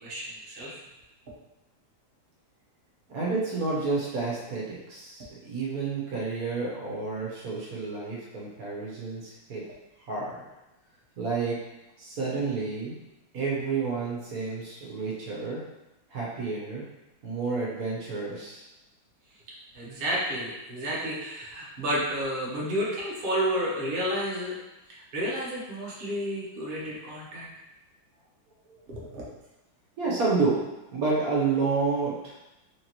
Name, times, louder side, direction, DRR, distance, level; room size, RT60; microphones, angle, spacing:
voice 1, 0.0-0.7 19.7-24.5 24.9-27.5 28.9-29.2, equal, 80° right, -5 dB, 0.5 m, -31 dB
voice 2, 3.1-9.6 10.1-10.4 11.2-11.6 12.0-12.9 13.3-15.6 16.1-16.8 17.2-18.6 28.7-28.8 30.0-30.6 30.9-32.4, right 4 dB, 60° right, -5 dB, 0.9 m, -30 dB
4.5 x 3.0 x 2.9 m, 0.97 s
omnidirectional pair, 2.4 m